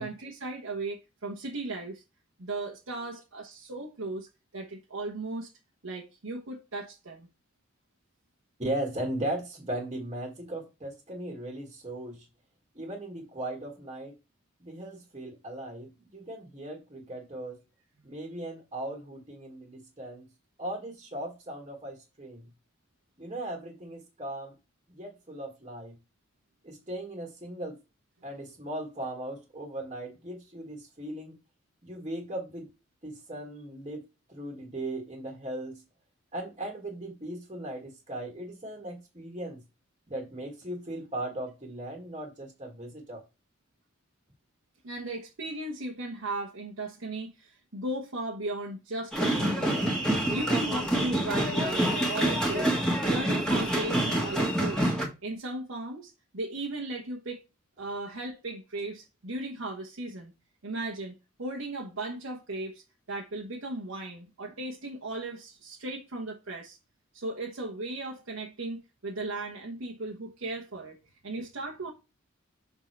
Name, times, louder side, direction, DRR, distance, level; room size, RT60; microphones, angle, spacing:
voice 1, 0.0-2.0 2.4-4.3 4.5-5.5 5.8-7.3 44.8-50.0 50.3-54.9 55.2-57.5 57.8-60.3 60.6-66.8 67.1-71.0 71.2-71.9, right 2 dB, 80° right, 1.2 m, -36 dB
voice 2, 8.6-12.3 12.7-14.1 14.6-17.6 18.0-20.3 20.6-22.5 23.2-24.5 24.9-26.0 26.6-27.8 28.2-31.4 31.8-32.7 33.0-35.8 36.3-39.6 40.1-43.2, right 1 dB, 30° right, 1.6 m, -38 dB
sound 1, 49.1-55.1, right 1 dB, 5° left, 1.7 m, -27 dB
6.2 x 3.9 x 4.5 m
head